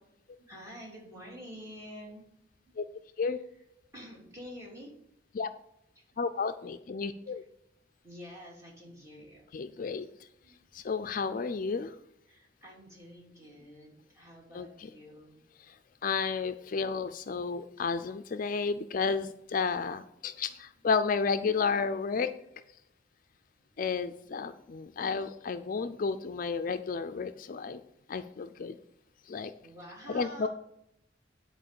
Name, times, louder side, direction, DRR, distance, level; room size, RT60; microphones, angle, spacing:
voice 1, 0.5-2.2 3.2-3.4 3.9-4.9 5.9-6.2 8.0-9.5 10.4-10.6 12.3-15.4 20.5-20.6 23.7-23.8 29.3-30.5, equal, 15° right, -4 dB, 3.1 m, -48 dB
voice 2, 6.2-7.4 9.5-10.1 10.7-11.9 14.5-14.7 16.0-22.3 23.8-27.8 28.1-28.8 29.3-29.5 30.1-30.5, left 5 dB, 45° left, 10 dB, 0.4 m, -32 dB
10.0 x 4.5 x 6.8 m, 0.78 s
head